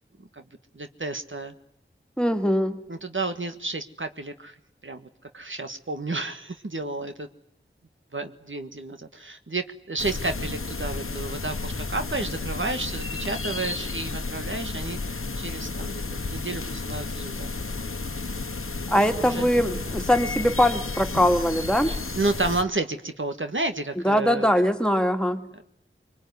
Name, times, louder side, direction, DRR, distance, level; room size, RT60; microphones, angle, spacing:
voice 1, 0.7-1.5 2.9-4.5 4.8-5.1 5.3-7.3 8.1-17.5 19.1-19.5 21.9-24.5 25.5-25.6, right 2 dB, 65° right, 7 dB, 1.7 m, -31 dB
voice 2, 2.2-2.8 18.9-21.9 24.0-25.5, equal, 5° left, 6 dB, 2.4 m, -22 dB
sound 1, 10.0-22.6, left 3 dB, 85° left, 1.2 m, -32 dB
25.0 x 23.0 x 9.6 m, 0.74 s
wide cardioid pair, 45°, 21 cm